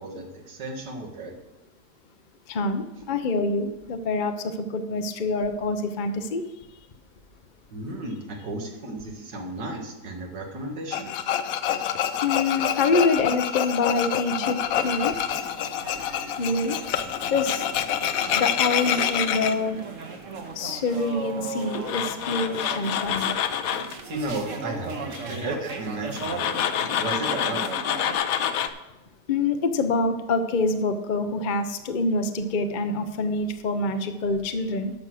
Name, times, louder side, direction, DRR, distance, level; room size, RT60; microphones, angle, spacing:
voice 1, 0.0-1.4 7.7-11.3 24.1-26.5 27.0-27.6, right 2 dB, 90° right, 2 dB, 2.3 m, -34 dB
voice 2, 2.5-6.4 12.2-15.2 16.4-16.8 17.3-17.6 18.3-19.8 20.6-23.3 25.2-25.5 29.3-34.9, left 3 dB, 45° left, 8 dB, 0.6 m, -26 dB
Tools, 10.9-19.5 21.7-23.9 26.2-28.7, left 9 dB, 65° left, 1.0 m, -27 dB
sound 1, 14.8-28.2, right 4 dB, 50° right, 1.4 m, -38 dB
11.5 x 6.1 x 6.3 m, 0.97 s
omnidirectional pair, 1.8 m